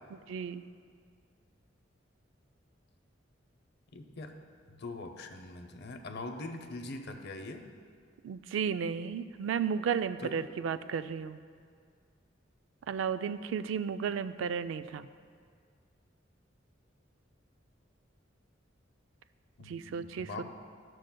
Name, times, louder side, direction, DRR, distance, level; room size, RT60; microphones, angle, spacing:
voice 1, 0.1-0.6 8.2-11.4 12.9-15.1 19.7-20.4, right 7 dB, 75° right, 13 dB, 0.3 m, -33 dB
voice 2, 3.9-4.3 4.7-7.6 10.2-10.3 19.6-20.4, left 2 dB, 60° left, 5 dB, 0.6 m, -42 dB
13.5 x 6.3 x 2.2 m, 2.1 s
head